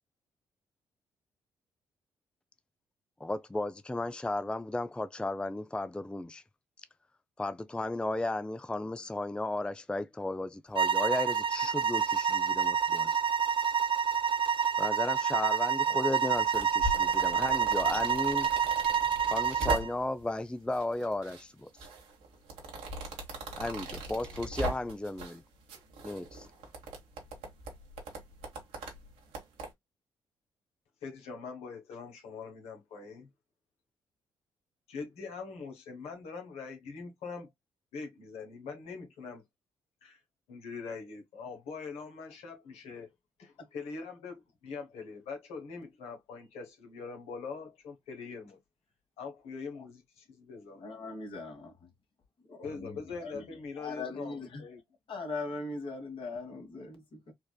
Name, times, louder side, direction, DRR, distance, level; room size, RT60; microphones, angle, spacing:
voice 1, 3.2-6.4 7.4-13.2 14.8-18.5 19.3-21.7 23.6-25.4 26.0-26.5, left 2 dB, 10° left, 0.4 m, -34 dB
sound 1, 10.7-19.9, right 7 dB, 55° right, 0.7 m, -28 dB
sound 2, 16.2-20.2 20.7-21.4 21.8-25.4 25.7-29.7, right 2 dB, 80° right, 1.3 m, -40 dB
voice 2, 31.0-33.3 34.9-37.5 37.9-39.4 40.0-40.2 40.5-43.1 43.4-48.6 49.2-50.8 52.6-54.8, left 4 dB, 75° left, 1.1 m, -43 dB
voice 3, 50.7-51.7 52.5-52.9 53.2-53.4 53.8-54.6 55.1-57.3, left 3 dB, 55° left, 1.6 m, -40 dB
4.4 x 2.4 x 2.2 m
hypercardioid pair, 45°, 11 cm